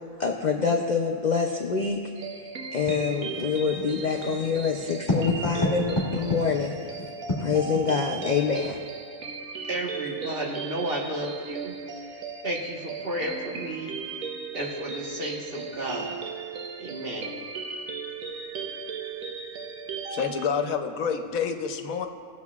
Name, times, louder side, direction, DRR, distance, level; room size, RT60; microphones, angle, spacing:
voice 1, 0.2-2.0 2.7-6.7 7.4-8.8, left 5 dB, 55° left, 2 dB, 0.5 m, -26 dB
sound 1, 2.1-20.5, right 5 dB, 80° right, 1.2 m, -37 dB
Writing, 2.9-8.8, left 1 dB, 30° left, 2.0 m, -31 dB
voice 2, 9.7-11.7 12.0-12.2 12.4-16.2 16.8-17.3, right 1 dB, 45° right, -2 dB, 1.4 m, -32 dB
voice 3, 20.1-22.1, left 6 dB, 85° left, 6 dB, 1.1 m, -28 dB
19.0 x 7.2 x 2.4 m, 2.1 s
omnidirectional pair, 1.4 m